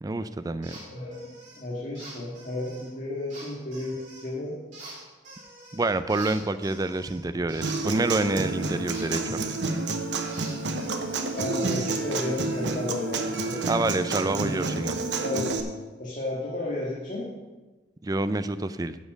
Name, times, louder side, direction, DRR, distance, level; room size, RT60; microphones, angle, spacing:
voice 1, 0.0-0.8 5.7-9.5 13.7-15.0 18.0-19.0, right 2 dB, 20° right, 12 dB, 0.4 m, -27 dB
sound 1, 0.6-0.8 1.1-1.6 1.9-2.9 3.3-4.3 4.7-5.8 6.1-9.9 10.3-12.7, right 2 dB, 45° right, 3.6 m, -46 dB
voice 2, 0.7-4.6 11.3-13.6 14.3-14.6 15.2-15.6 16.0-17.3, left 2 dB, 50° left, -4 dB, 1.8 m, -33 dB
Human voice / Acoustic guitar, 7.6-15.6, right 3 dB, 75° right, 0.9 m, -29 dB
8.5 x 7.4 x 6.3 m, 1.2 s
head